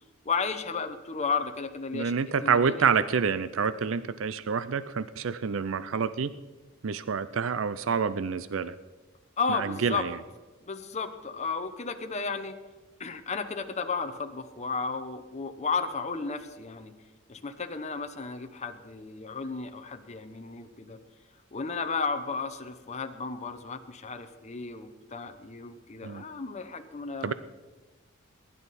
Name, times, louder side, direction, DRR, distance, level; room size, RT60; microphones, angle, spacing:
voice 1, 0.2-2.1 2.4-2.9 9.4-10.1 10.7-12.6 13.0-16.9 17.3-21.0 21.5-27.3, left 4 dB, 35° left, 7 dB, 0.8 m, -33 dB
voice 2, 1.9-6.3 6.8-8.7 9.5-10.1 26.0-26.2 27.2-27.3, right 6 dB, 65° right, 14 dB, 0.5 m, -27 dB
22.0 x 11.0 x 4.2 m, 1.2 s
head